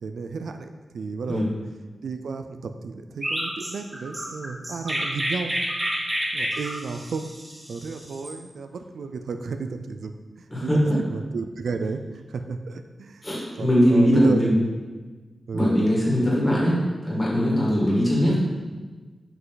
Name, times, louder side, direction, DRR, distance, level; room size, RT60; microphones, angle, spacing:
voice 1, 0.0-0.7 0.9-1.5 2.0-5.5 6.3-7.3 7.7-10.1 10.4-12.0 12.3-13.3 13.6-14.7 15.5-15.7, right 4 dB, 80° right, 7 dB, 0.4 m, -32 dB
Chirp tweet, 3.2-8.3, equal, 15° right, 1.1 m, -29 dB
sound 1, 3.2-3.7 4.0-4.5 4.8-5.2 5.7-6.1 6.5-7.0, right 2 dB, 35° right, 0.7 m, -39 dB
voice 2, 10.5-10.9 13.2-14.5 15.5-18.4, equal, 15° left, -6 dB, 2.1 m, -21 dB
5.9 x 5.5 x 3.9 m, 1.4 s
wide cardioid pair, 155°, 0 cm